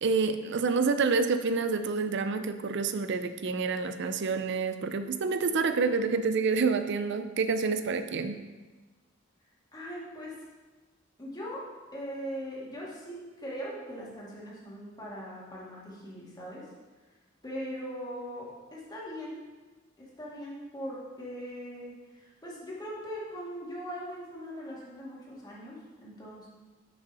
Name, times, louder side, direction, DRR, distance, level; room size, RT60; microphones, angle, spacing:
voice 1, 0.0-8.4, right 4 dB, 60° right, 9 dB, 0.5 m, -28 dB
voice 2, 9.7-10.3 11.2-11.6 11.9-16.6 17.4-19.4 20.0-26.5, equal, 20° left, -6 dB, 2.1 m, -40 dB
6.4 x 5.4 x 5.4 m, 1.3 s
head